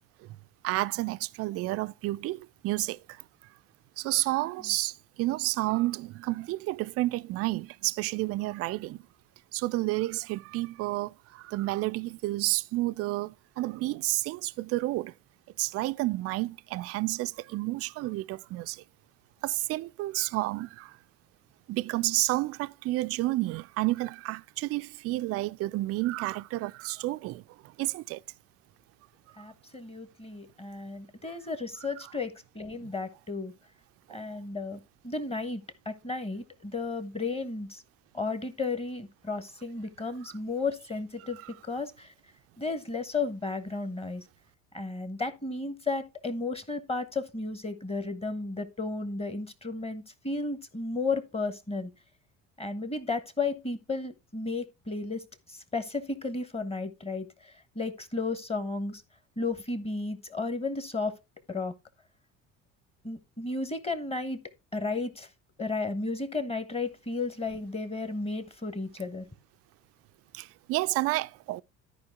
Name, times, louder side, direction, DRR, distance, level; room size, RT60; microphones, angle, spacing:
voice 1, 0.6-3.2 4.0-9.0 9.5-15.1 15.6-18.8 19.4-21.0 21.7-28.2 31.8-32.1 34.1-34.2 40.2-40.4 41.2-41.5 70.3-71.6, right 19 dB, 35° right, 0.4 m, -31 dB
voice 2, 29.4-33.5 34.1-37.8 38.1-42.1 42.6-44.2 44.7-51.9 52.6-55.2 55.7-57.2 57.7-59.0 59.4-61.1 61.5-61.7 63.0-64.4 64.7-65.3 65.6-69.2, left 3 dB, 15° left, 1.3 m, -33 dB
13.0 x 5.0 x 3.5 m
figure-of-eight pair, 60°, 41 cm